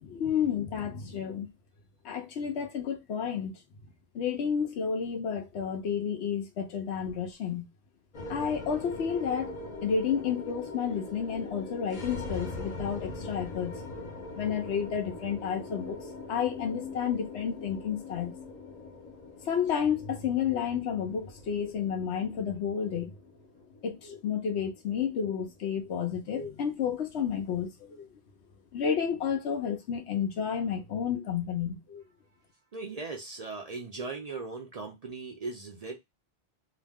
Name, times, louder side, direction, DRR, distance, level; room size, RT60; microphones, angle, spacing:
voice 1, 0.0-1.5 2.0-3.5 4.1-7.7 8.3-13.8 14.3-16.0 16.3-18.3 19.5-23.2 23.8-28.1 28.7-32.0, left 7 dB, 85° left, 1.0 m, -31 dB
sound 1, 8.1-26.5, left 2 dB, 50° left, 0.6 m, -42 dB
voice 2, 32.7-36.0, right 3 dB, 50° right, 0.4 m, -38 dB
2.8 x 2.1 x 3.4 m
omnidirectional pair, 1.1 m